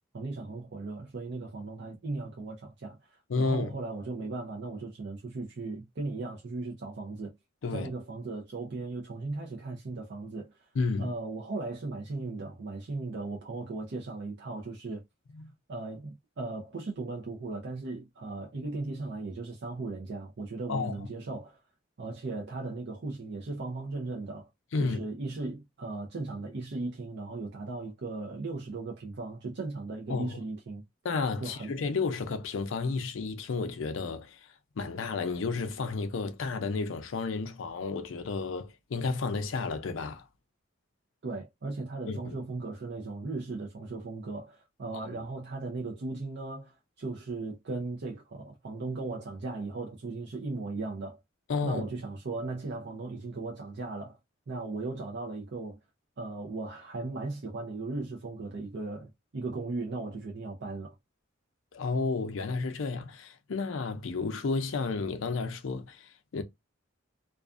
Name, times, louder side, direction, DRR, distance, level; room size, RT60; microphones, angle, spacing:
voice 1, 0.1-7.3 7.7-10.6 11.0-15.0 15.7-21.6 22.0-24.5 24.8-30.8 31.4-31.7 41.2-51.2 51.6-54.2 54.5-55.8 56.2-60.9, right 3 dB, 60° right, 0.6 m, -37 dB
voice 2, 3.3-3.7 7.6-7.9 10.7-11.1 15.3-15.5 20.7-21.1 24.7-25.0 30.1-30.4 31.0-34.5 34.8-40.3 42.1-42.3 45.1-45.2 51.5-51.8 61.7-66.4, left 4 dB, 70° left, 0.5 m, -32 dB
2.4 x 2.3 x 2.4 m
head